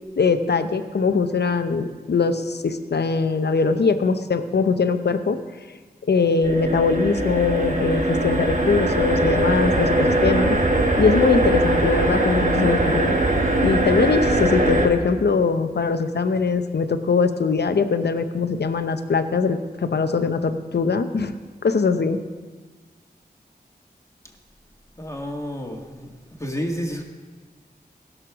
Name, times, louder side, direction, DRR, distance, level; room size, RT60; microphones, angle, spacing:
voice 1, 0.2-5.4 6.1-10.6 11.0-13.2 13.6-21.3 21.6-22.2, left 4 dB, 80° left, 9 dB, 0.7 m, -21 dB
sound 1, 6.4-14.9, right 1 dB, 50° right, 1.6 m, -21 dB
voice 2, 25.0-26.1 26.4-27.0, equal, 20° left, 1 dB, 2.0 m, -30 dB
16.5 x 6.6 x 6.1 m, 1.4 s
cardioid pair, 45°, 17 cm